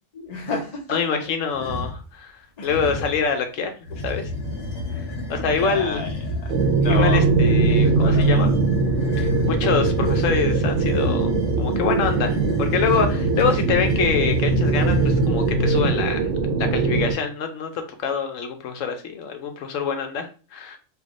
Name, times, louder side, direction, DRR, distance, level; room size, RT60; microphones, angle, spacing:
voice 1, 0.1-1.0 2.6-2.7 5.5-6.5 6.8-7.3 8.0-8.4, left 3 dB, 35° left, 0 dB, 0.8 m, -31 dB
voice 2, 0.9-2.4 2.6-3.7 4.0-4.3 4.9-5.0 5.3-6.0 6.9-8.5 9.2-11.3 11.6-16.3 16.6-17.7 18.0-20.8, left 6 dB, 80° left, 6 dB, 1.0 m, -25 dB
sound 1, 1.5-2.0 2.6-3.2 3.8-15.8, left 2 dB, 60° left, 1.5 m, -29 dB
sound 2, 6.5-17.1, right 4 dB, 70° right, 0.9 m, -21 dB
3.5 x 2.3 x 3.6 m, 0.36 s
omnidirectional pair, 1.3 m